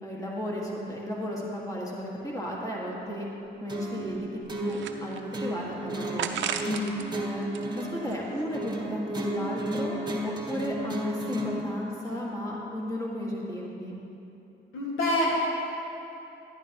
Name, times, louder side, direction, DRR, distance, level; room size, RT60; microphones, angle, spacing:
voice 1, 0.0-3.3 3.6-6.4 7.1-14.0, equal, 15° left, -4 dB, 1.8 m, -34 dB
sound 1, 3.0-3.1 3.5-3.6 4.1-5.5 6.2-7.1 7.4-8.6, right 8 dB, 70° right, 0.6 m, -35 dB
sound 2, 3.7-11.7, right 1 dB, 20° right, 1.1 m, -34 dB
voice 2, 6.6-7.0 14.7-15.5, left 1 dB, 80° left, -3 dB, 1.8 m, -27 dB
11.0 x 10.5 x 2.9 m, 2.9 s
cardioid pair, 90°, 20 cm